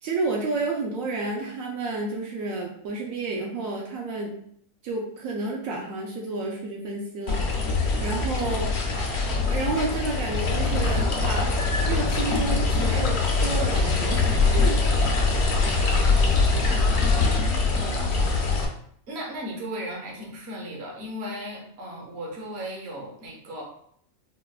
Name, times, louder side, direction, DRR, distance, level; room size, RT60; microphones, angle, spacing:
voice 1, 0.0-4.3 4.8-7.5 8.0-8.7 9.4-11.5 11.8-14.8, right 3 dB, 80° right, -1 dB, 1.0 m, -30 dB
sound 1, 7.3-18.7, left 3 dB, 60° left, 0.8 m, -23 dB
voice 2, 16.6-17.3 17.7-18.3 19.1-23.6, equal, 55° right, -1 dB, 1.0 m, -36 dB
4.2 x 2.2 x 2.3 m, 0.67 s
omnidirectional pair, 1.4 m